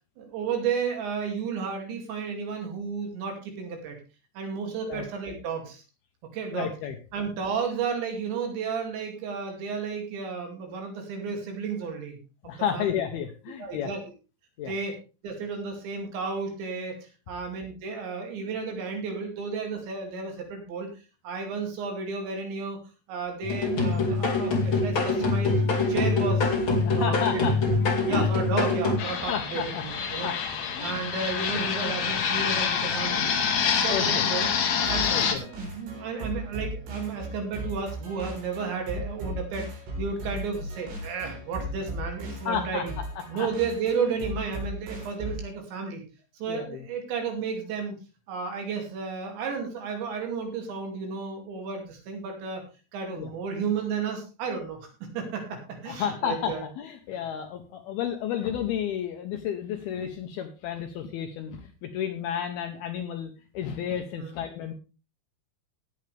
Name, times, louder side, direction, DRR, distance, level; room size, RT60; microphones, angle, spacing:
voice 1, 0.2-4.0 4.3-5.8 6.3-6.7 7.1-12.2 12.4-12.8 13.6-14.0 14.7-14.9 15.2-20.9 21.2-22.8 23.1-25.5 25.9-26.5 26.9-27.4 28.0-30.3 30.8-33.3 33.6-34.5 34.9-42.9 43.3-46.0 46.4-47.9 48.3-52.6 52.9-54.8 55.1-56.6 64.2-64.4, right 5 dB, 70° right, 3 dB, 4.8 m, -32 dB
voice 2, 6.5-7.0 12.4-13.9 14.6-14.7 26.8-27.6 28.1-28.3 29.3-29.8 30.2-30.4 30.7-31.0 33.9-34.3 35.1-35.4 42.5-42.9 43.3-43.5 46.5-46.8 53.1-53.3 55.9-64.7, left 9 dB, 75° left, 6 dB, 2.4 m, -32 dB
sound 1, 23.4-29.0, left 3 dB, 35° left, 2.4 m, -24 dB
Fixed-wing aircraft airplane, 29.0-35.3, left 7 dB, 60° left, 1.9 m, -27 dB
sound 2, 34.9-45.5, equal, 90° right, 6.5 m, -37 dB
18.5 x 8.2 x 3.4 m, 0.32 s
omnidirectional pair, 5.4 m